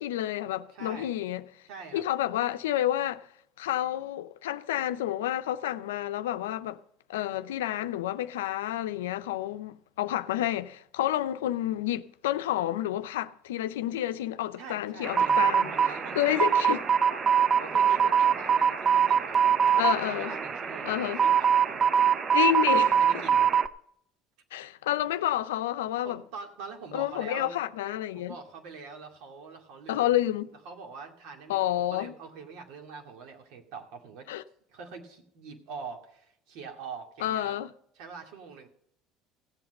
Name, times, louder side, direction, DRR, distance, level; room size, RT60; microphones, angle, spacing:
voice 1, 0.0-1.4 1.9-3.3 3.6-6.8 7.1-15.7 16.2-16.8 19.8-20.3 20.8-21.2 22.3-23.0 24.5-26.2 26.9-28.4 29.9-30.5 31.5-32.1 34.3-34.4 37.2-37.7, left 13 dB, 85° left, 0.6 m, -29 dB
voice 2, 0.7-1.2 1.7-2.0 14.6-16.7 17.3-22.0 22.9-23.5 26.0-27.6 28.1-30.2 30.7-34.3 34.7-37.6 38.0-38.7, right 5 dB, 70° right, 2.3 m, -44 dB
sound 1, 15.0-23.7, right 7 dB, 35° right, 0.8 m, -23 dB
16.0 x 7.9 x 5.3 m
hypercardioid pair, 80°, 0 cm